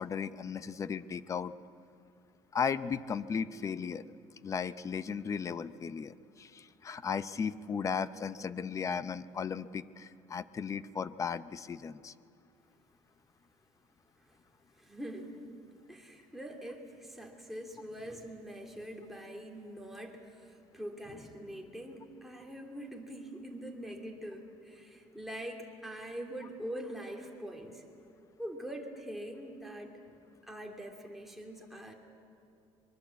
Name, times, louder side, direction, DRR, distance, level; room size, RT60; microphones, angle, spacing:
voice 1, 0.0-1.5 2.5-4.0 4.4-12.1, left 6 dB, 30° left, 14 dB, 0.7 m, -36 dB
voice 2, 14.8-15.3 15.9-27.8 28.4-30.2 30.4-31.9, equal, ahead, 0 dB, 2.8 m, -44 dB
23.5 x 23.5 x 8.3 m, 2.5 s
cardioid pair, 150°, 11 cm